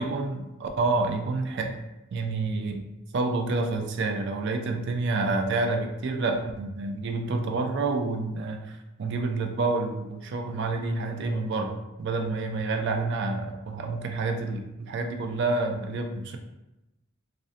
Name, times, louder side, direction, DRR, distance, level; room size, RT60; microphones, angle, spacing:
voice 1, 0.0-1.8 2.1-2.8 3.1-16.4, right 3 dB, 55° right, 5 dB, 0.3 m, -28 dB
2.5 x 2.1 x 2.6 m, 0.95 s
head